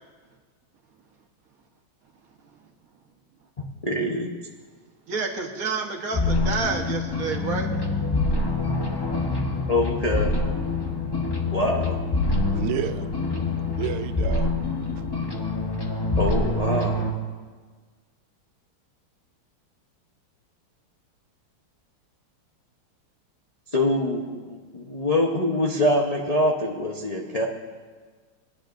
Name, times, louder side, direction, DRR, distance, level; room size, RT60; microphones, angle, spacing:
voice 1, 3.6-4.3 9.7-10.3 11.5-12.0 16.2-17.0 23.7-27.5, left 1 dB, 75° left, -2 dB, 0.3 m, -24 dB
voice 2, 5.1-7.7, right 4 dB, 45° right, 3 dB, 1.4 m, -29 dB
sound 1, 6.1-17.1, left 2 dB, 25° left, 0.5 m, -26 dB
voice 3, 12.5-13.1 13.8-14.5, right 10 dB, 85° right, 10 dB, 1.5 m, -30 dB
22.5 x 9.9 x 2.6 m, 1.5 s
omnidirectional pair, 2.3 m